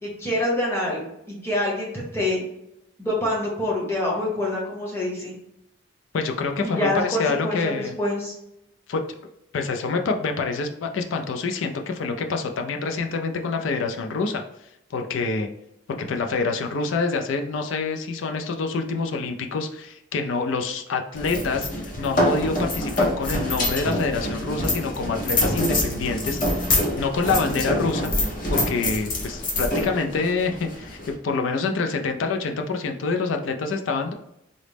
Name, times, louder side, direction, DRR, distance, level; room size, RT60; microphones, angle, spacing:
voice 1, 0.0-1.0 1.3-2.4 3.0-5.3 6.6-8.3, left 1 dB, 15° left, -4 dB, 0.9 m, -26 dB
voice 2, 6.1-7.9 8.9-9.0 9.5-14.4 14.9-15.5 15.9-28.1 28.5-34.1, left 4 dB, 75° left, 5 dB, 0.4 m, -26 dB
sound 1, 21.1-31.1, left 1 dB, 40° left, 0.7 m, -25 dB
3.9 x 2.0 x 3.3 m, 0.82 s
head